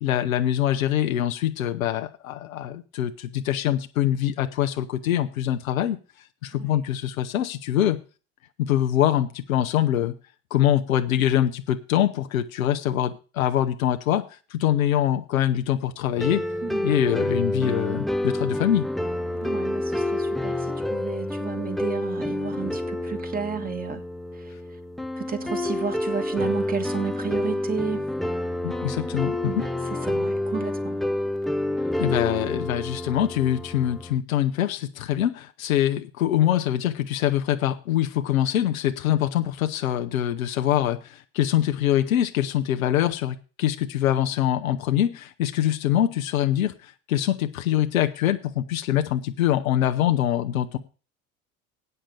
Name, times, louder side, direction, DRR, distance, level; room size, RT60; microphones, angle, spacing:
voice 1, 0.0-6.0 6.4-8.0 8.6-10.1 10.5-14.2 14.5-16.4 16.8-18.9 28.6-29.6 32.0-50.8, left 11 dB, 70° left, 0.9 m, -24 dB
sound 1, 16.2-34.2, left 1 dB, ahead, 0.5 m, -28 dB
voice 2, 16.6-17.0 19.4-24.0 24.3-24.6 25.2-28.1 29.4-31.0 32.1-32.2, right 7 dB, 20° right, 1.7 m, -33 dB
8.8 x 6.6 x 8.4 m
figure-of-eight pair, 70°, 42 cm